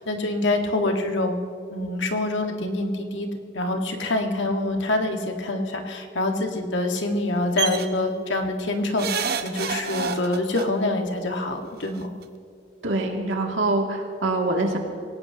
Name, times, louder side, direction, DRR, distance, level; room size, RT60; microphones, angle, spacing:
voice 1, 0.0-1.4 1.7-3.3 3.5-9.1 9.4-12.1, left 2 dB, 80° left, 3 dB, 1.7 m, -25 dB
sound 1, 7.6-7.9 9.0-10.7 11.8-11.9 12.2-12.3, right 6 dB, 55° right, 0.9 m, -28 dB
voice 2, 12.8-14.8, right 2 dB, 90° right, 1 dB, 2.4 m, -24 dB
26.5 x 18.0 x 2.9 m, 2.6 s
head